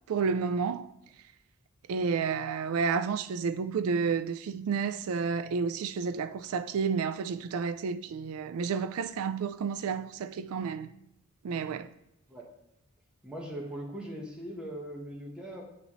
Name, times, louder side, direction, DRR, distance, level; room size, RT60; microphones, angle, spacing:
voice 1, 0.1-0.9 1.9-10.9 11.4-11.9, right 5 dB, 85° right, 0.3 m, -31 dB
voice 2, 13.2-15.6, right 1 dB, 5° right, 0.9 m, -40 dB
7.9 x 4.1 x 3.0 m
head